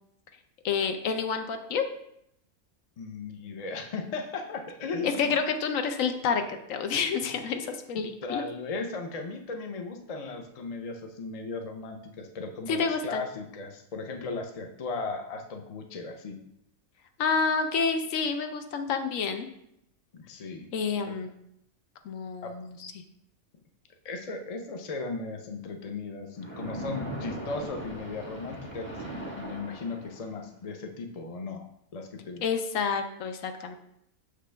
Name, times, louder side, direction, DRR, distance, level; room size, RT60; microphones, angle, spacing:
voice 1, 0.6-1.8 5.0-8.5 12.7-13.2 17.2-19.5 20.7-21.3 22.0-23.0 32.4-33.8, left 5 dB, 70° left, 7 dB, 1.0 m, -29 dB
voice 2, 3.0-5.3 7.2-7.3 8.2-16.4 20.1-20.7 21.1-21.2 22.4-22.6 24.0-28.9 29.4-31.6 31.9-32.4, left 3 dB, 45° left, 4 dB, 0.4 m, -36 dB
Splash splatter, 26.4-30.4, right 1 dB, 10° left, 1.0 m, -39 dB
6.5 x 5.1 x 3.3 m, 0.76 s
omnidirectional pair, 1.5 m